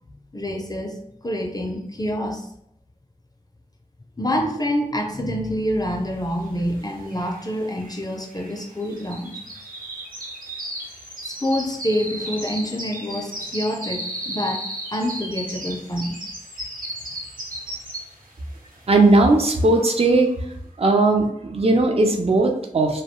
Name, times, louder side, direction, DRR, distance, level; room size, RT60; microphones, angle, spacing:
voice 1, 0.3-2.5 4.2-9.4 11.2-16.2, equal, 25° left, 2 dB, 0.4 m, -27 dB
sound 1, 6.6-6.7 6.9-18.3 18.7-19.0 19.5-19.6, right 1 dB, 90° right, 0.7 m, -35 dB
voice 2, 18.9-20.3 20.8-23.0, right 2 dB, 45° right, 3 dB, 0.4 m, -18 dB
2.2 x 2.1 x 2.9 m, 0.75 s
wide cardioid pair, 45°, 14 cm